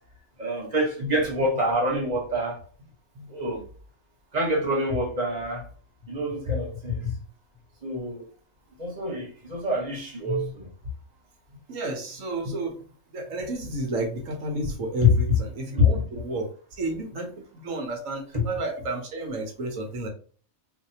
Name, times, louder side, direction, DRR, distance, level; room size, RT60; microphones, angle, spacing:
voice 1, 0.4-2.6 3.3-3.6 4.3-5.6 6.1-7.1 7.8-8.2 8.8-10.7 15.0-15.4 15.8-15.9 18.3-18.4, left 2 dB, 30° right, 1.3 m, -25 dB
voice 2, 11.7-12.8 13.1-16.5 16.8-20.1, right 2 dB, 70° right, 1.3 m, -31 dB
4.1 x 2.7 x 2.8 m
omnidirectional pair, 1.4 m